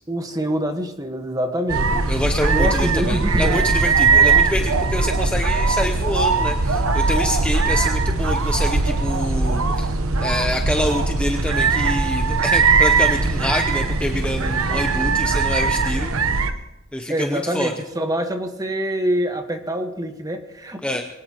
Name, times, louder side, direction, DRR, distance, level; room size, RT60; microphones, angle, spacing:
voice 1, 0.1-2.1 2.5-3.6 17.1-21.0, equal, 15° right, 6 dB, 1.4 m, -25 dB
sound 1, 1.7-16.5, right 4 dB, 85° right, 1.0 m, -20 dB
voice 2, 2.1-16.1 16.9-17.7 20.8-21.0, left 1 dB, 5° left, 4 dB, 0.7 m, -26 dB
23.0 x 18.0 x 3.0 m, 1.0 s
head